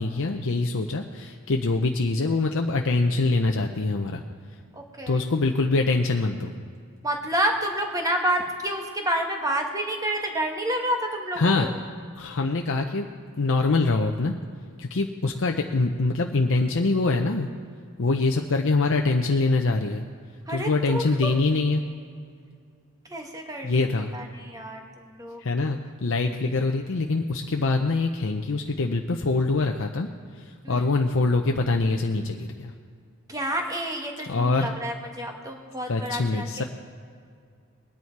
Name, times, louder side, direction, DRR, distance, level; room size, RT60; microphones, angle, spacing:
voice 1, 0.0-4.2 5.1-6.5 11.4-11.7 12.2-13.1 13.4-14.3 14.8-17.5 18.0-20.0 20.5-21.8 23.6-24.1 25.4-30.1 30.3-32.7 34.2-34.7 35.9-36.6, left 3 dB, 60° left, 3 dB, 0.7 m, -24 dB
voice 2, 4.7-5.2 7.0-11.7 20.5-21.3 23.1-23.9 24.1-25.4 30.6-30.8 33.3-36.5, right 1 dB, 15° right, 3 dB, 1.4 m, -29 dB
20.5 x 9.9 x 4.7 m, 2.2 s
head